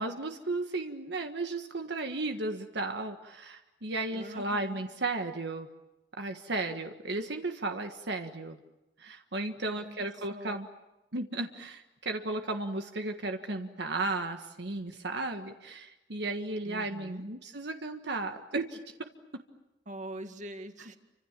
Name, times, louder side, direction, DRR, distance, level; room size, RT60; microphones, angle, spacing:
voice 1, 0.0-5.7 6.2-8.6 9.0-10.7 11.1-18.8, right 2 dB, 70° right, 5 dB, 1.6 m, -34 dB
voice 2, 4.1-4.8 9.8-10.6 16.7-17.2 19.9-21.0, right 1 dB, 45° right, 7 dB, 2.1 m, -44 dB
29.5 x 26.0 x 7.5 m, 0.97 s
head